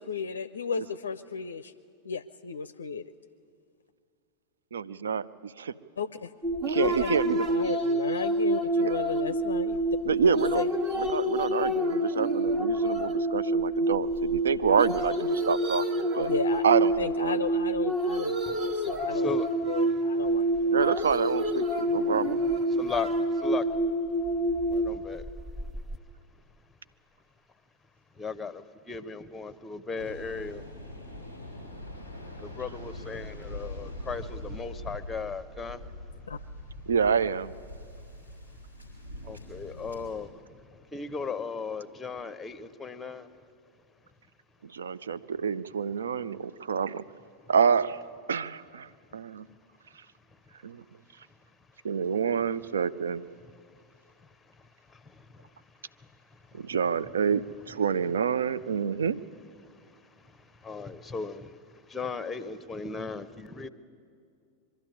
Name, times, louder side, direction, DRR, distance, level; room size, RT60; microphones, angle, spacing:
voice 1, 0.0-1.7 2.0-3.0 6.0-6.3 6.8-7.1 7.5-9.8 10.3-10.7 16.2-16.6 17.0-19.4 19.7-20.7 36.3-36.4, left 5 dB, 70° left, 12 dB, 0.4 m, -34 dB
voice 2, 4.7-5.7 6.7-7.5 8.8-8.9 10.0-10.7 11.0-15.9 16.1-16.3 16.6-17.4 20.7-22.4 36.9-37.5 44.6-47.0 47.5-49.4 50.6-50.8 51.8-53.2 56.5-59.2, right 6 dB, 65° right, 15 dB, 0.5 m, -27 dB
sound 1, 6.4-26.0, right 1 dB, 30° right, 1.3 m, -27 dB
voice 3, 18.5-20.0 20.3-20.5 22.7-23.8 24.7-25.3 28.1-31.4 32.4-36.2 39.2-43.4 49.5-49.6 50.3-50.4 53.4-56.8 59.6-63.7, left 4 dB, 10° left, 13 dB, 0.8 m, -38 dB
Waves surf, 30.0-40.2, left 1 dB, 85° right, 4.7 m, -43 dB
23.5 x 12.0 x 9.6 m, 2.3 s
figure-of-eight pair, 90°, 0 cm